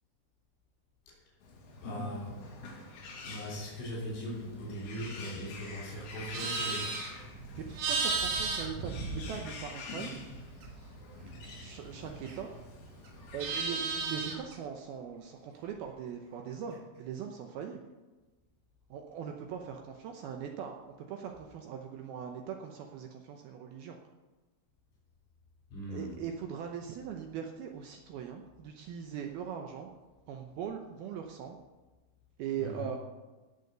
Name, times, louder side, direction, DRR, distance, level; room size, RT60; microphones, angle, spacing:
Bird, 1.4-14.4, left 3 dB, 60° left, 4.0 m, -46 dB
voice 1, 1.8-2.4 3.2-7.0 25.7-26.1 32.6-32.8, equal, 75° left, -4 dB, 6.0 m, -39 dB
Livestock farm animals working animals, 6.1-9.8 10.1-12.6 13.0-14.5, right 4 dB, 60° right, 3.1 m, -35 dB
voice 2, 7.6-10.3 11.4-12.5 13.3-17.9 18.9-24.0 25.9-29.9 30.3-31.6 32.4-33.0, right 8 dB, 80° right, 3 dB, 2.2 m, -40 dB
17.0 x 6.6 x 6.7 m, 1.2 s
omnidirectional pair, 5.5 m